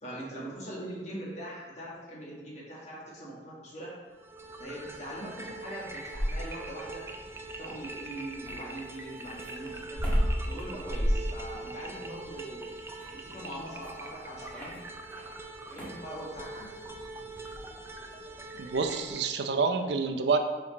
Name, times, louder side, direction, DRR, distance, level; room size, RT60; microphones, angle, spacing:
voice 1, 0.0-3.9 4.6-7.0 7.6-10.0 10.5-12.8 13.1-14.7 15.7-16.7, right 1 dB, 40° left, -5 dB, 1.7 m, -42 dB
sound 1, 4.1-19.2, right 2 dB, 15° right, 0.4 m, -43 dB
sound 2, 5.8-6.7 8.5-15.3 15.6-16.1 17.4-17.6, equal, 10° left, 1.4 m, -32 dB
voice 2, 18.6-20.4, right 4 dB, 70° right, 6 dB, 0.5 m, -28 dB
5.2 x 4.9 x 4.0 m, 1.4 s
head